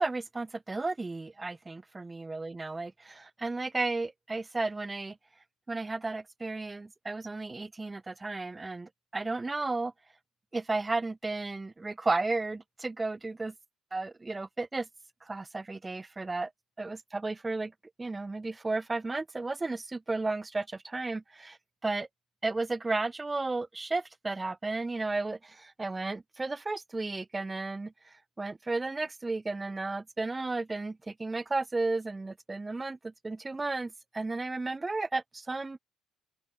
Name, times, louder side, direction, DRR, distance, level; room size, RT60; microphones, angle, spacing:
voice 1, 0.0-5.2 5.7-9.9 10.5-13.5 13.9-14.9 15.2-16.5 16.8-17.7 18.0-21.6 21.8-22.1 22.4-27.9 28.4-35.8, right 3 dB, 20° right, 5.2 m, -33 dB
open air
hypercardioid pair, 65°, 0 cm